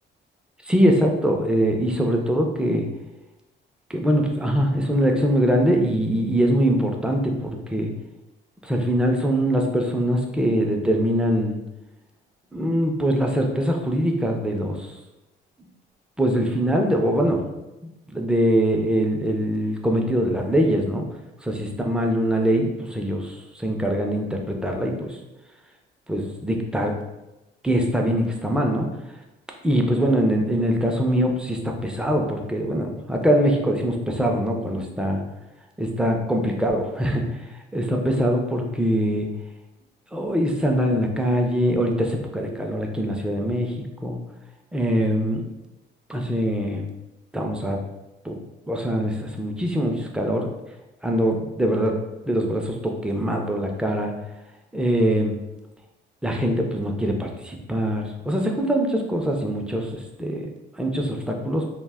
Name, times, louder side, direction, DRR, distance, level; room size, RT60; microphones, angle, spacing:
voice 1, 0.6-2.9 3.9-7.9 8.6-11.6 12.5-14.9 16.2-17.4 17.8-21.1 21.4-25.2 26.1-26.9 27.6-28.9 29.6-35.2 35.8-37.3 37.7-39.3 40.1-44.2 44.7-45.4 46.1-46.9 47.3-47.8 48.2-48.4 48.7-50.5 51.0-52.0 52.3-54.1 54.7-55.4 56.2-60.5 60.8-61.7, equal, 5° right, 2 dB, 0.4 m, -23 dB
2.2 x 2.0 x 3.4 m, 1.0 s
cardioid pair, 90°, 20 cm